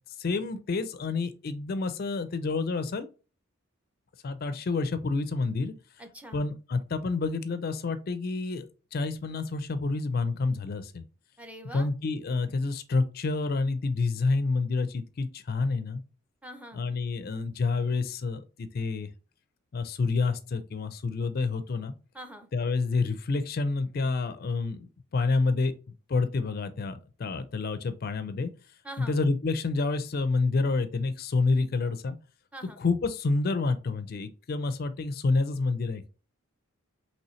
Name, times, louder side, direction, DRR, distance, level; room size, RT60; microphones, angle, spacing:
voice 1, 0.2-3.1 4.2-5.7 6.3-8.7 8.9-11.0 11.7-16.0 16.7-19.1 19.7-21.9 22.5-25.7 26.1-28.5 29.0-32.2 32.8-36.1, left 3 dB, 45° left, 12 dB, 0.4 m, -28 dB
voice 2, 6.0-6.5 11.4-11.9 16.4-16.8 22.1-22.5 28.8-29.2 32.5-32.8, right 1 dB, 5° right, 6 dB, 0.5 m, -44 dB
5.5 x 3.1 x 3.1 m, 0.34 s
head